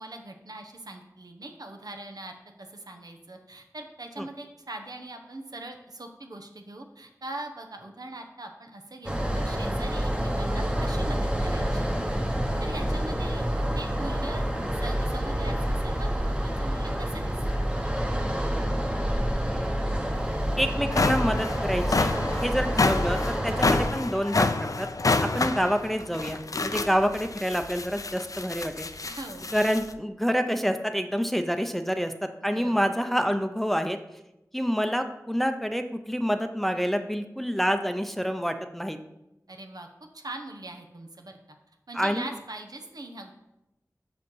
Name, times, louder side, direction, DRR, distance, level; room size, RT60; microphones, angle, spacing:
voice 1, 0.0-11.9 12.6-13.4 13.7-14.4 14.8-17.6 29.0-29.6 32.5-32.9 39.5-39.9 40.1-41.6 41.9-43.3, right 2 dB, 80° right, 4 dB, 0.9 m, -41 dB
sound 1, 9.0-23.9, equal, 15° right, 1.1 m, -28 dB
sound 2, 20.2-20.3 20.7-29.9, left 3 dB, 60° left, 0.4 m, -28 dB
voice 2, 20.6-22.1 22.4-24.9 25.2-28.9 29.5-34.0 34.5-39.0 41.9-42.3, equal, 5° left, 7 dB, 0.6 m, -27 dB
6.4 x 5.1 x 5.5 m, 0.91 s
wide cardioid pair, 45°, 6 cm